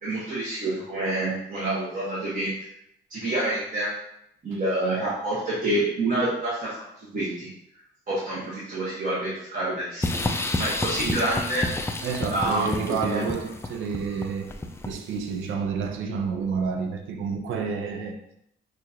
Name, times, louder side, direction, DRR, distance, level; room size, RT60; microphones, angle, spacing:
voice 1, 0.0-2.5 3.1-3.9 4.4-7.5 8.1-10.1 10.6-11.7 12.3-12.7 13.0-13.2, right 1 dB, 40° right, -8 dB, 1.3 m, -27 dB
sound 1, 10.0-15.2, left 2 dB, 15° left, 0.4 m, -30 dB
voice 2, 10.9-11.2 12.0-14.5 14.8-18.2, right 5 dB, 80° right, 4 dB, 0.6 m, -29 dB
6.2 x 2.5 x 2.8 m, 0.78 s
cardioid pair, 90°, 20 cm